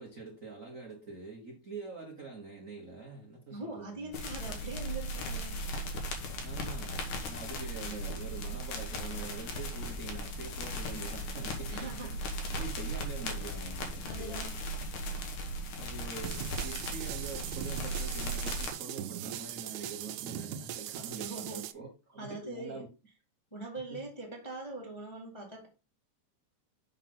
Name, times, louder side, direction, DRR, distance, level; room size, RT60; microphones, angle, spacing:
voice 1, 0.0-4.2 6.3-14.5 15.8-22.9 23.9-24.1, right 4 dB, 65° right, 0.8 m, -45 dB
voice 2, 3.5-5.6 11.7-12.2 14.0-14.5 21.2-21.6 22.2-22.8 23.5-25.7, right 2 dB, 15° left, 0.9 m, -42 dB
sound 1, 4.1-18.7, equal, 90° left, 2.8 m, -37 dB
sound 2, 16.2-21.7, right 11 dB, 80° right, 2.0 m, -40 dB
6.4 x 5.8 x 3.7 m
omnidirectional pair, 3.5 m